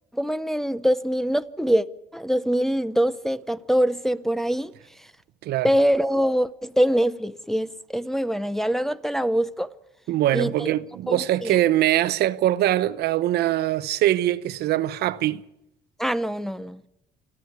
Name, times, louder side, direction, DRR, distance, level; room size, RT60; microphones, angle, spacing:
voice 1, 0.1-1.9 2.1-4.7 5.6-9.7 10.3-10.7 11.1-11.6 16.0-16.8, equal, ahead, 0.6 m, -24 dB
voice 2, 10.1-15.4, right 13 dB, 70° right, 0.8 m, -22 dB
28.0 x 10.0 x 9.5 m
cardioid pair, 110°, 17 cm